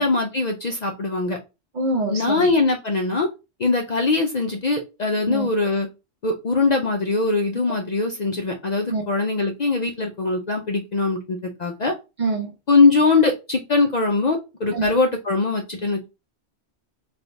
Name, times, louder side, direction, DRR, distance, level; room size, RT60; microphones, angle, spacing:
voice 1, 0.0-1.4 2.1-3.3 3.6-5.9 6.2-11.9 12.7-16.1, left 3 dB, 55° left, 0.5 m, -21 dB
voice 2, 1.7-2.5 5.3-5.5 8.9-9.0 12.2-12.5 14.7-14.9, right 2 dB, 50° right, 0.6 m, -25 dB
3.4 x 2.3 x 3.8 m
omnidirectional pair, 1.2 m